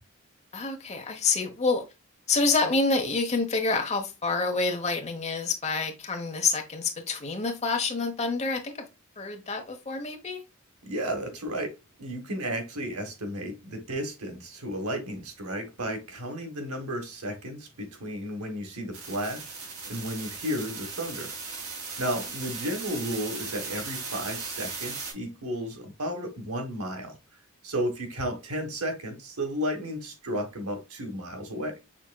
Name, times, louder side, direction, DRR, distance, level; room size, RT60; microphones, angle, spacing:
voice 1, 0.5-1.8 2.3-8.7 9.2-10.4, left 4 dB, 30° left, 1.0 m, -27 dB
voice 2, 10.8-11.7 12.0-19.5 19.9-21.3 22.0-27.1 27.6-31.8, equal, 85° right, 1.5 m, -33 dB
sound 1, 18.9-25.1, right 4 dB, 65° right, 2.7 m, -37 dB
6.1 x 3.5 x 2.3 m
head